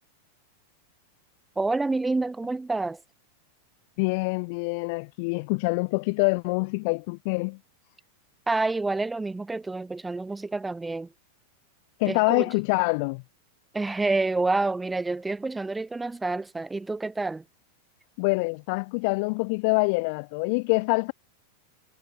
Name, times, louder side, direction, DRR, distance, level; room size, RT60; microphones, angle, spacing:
voice 1, 1.6-3.0 8.5-11.1 12.1-12.5 13.7-17.4, right 3 dB, 10° right, 2.7 m, -28 dB
voice 2, 4.0-7.6 12.0-13.2 18.2-21.1, left 31 dB, 55° left, 0.5 m, -25 dB
hypercardioid pair, 115°, 0 cm